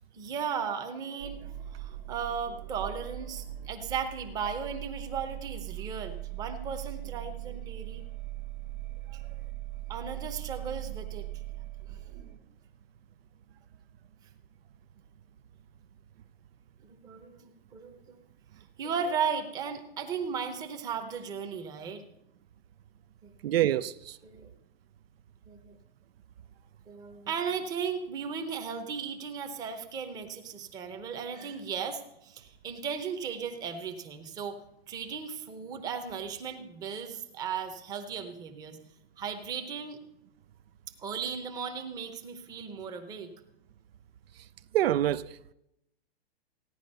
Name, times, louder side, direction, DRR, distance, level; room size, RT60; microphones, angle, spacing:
voice 1, 0.1-8.0 9.1-9.2 9.9-11.3 11.9-12.0 16.8-18.2 18.8-22.0 23.2-23.3 24.2-24.5 25.5-25.8 26.9-34.6 34.9-38.8 39.2-40.0 41.0-43.3, right 6 dB, 10° right, 0.8 m, -36 dB
sound 1, 1.2-12.4, right 14 dB, 55° right, 1.2 m, -40 dB
voice 2, 23.4-24.2 44.7-45.5, right 12 dB, 70° right, 0.5 m, -27 dB
15.5 x 10.0 x 5.4 m
supercardioid pair, 170°, 31 cm